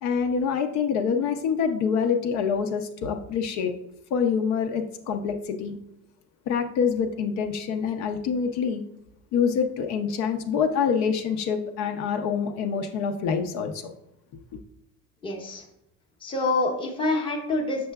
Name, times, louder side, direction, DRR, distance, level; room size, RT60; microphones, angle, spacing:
voice 1, 0.0-3.7 4.1-5.8 6.5-8.8 9.3-13.9, left 6 dB, 60° left, 5 dB, 0.6 m, -26 dB
voice 2, 15.2-15.6 16.2-17.9, left 2 dB, 15° left, 1 dB, 0.8 m, -26 dB
6.7 x 6.5 x 2.3 m, 0.80 s
cardioid pair, 170°, 32 cm